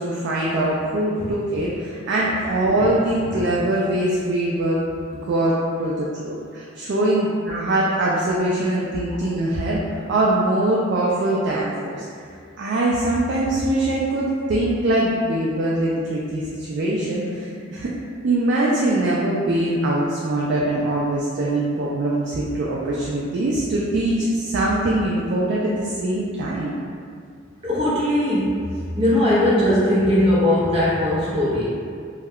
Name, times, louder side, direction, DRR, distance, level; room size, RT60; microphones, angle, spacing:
voice 1, 0.0-4.8 5.1-9.8 10.1-12.1 12.6-17.9 18.2-26.7, right 1 dB, 60° right, -5 dB, 0.3 m, -22 dB
voice 2, 27.6-28.6 29.0-31.6, left 1 dB, 30° right, -9 dB, 0.7 m, -19 dB
2.3 x 2.1 x 3.5 m, 2.2 s
head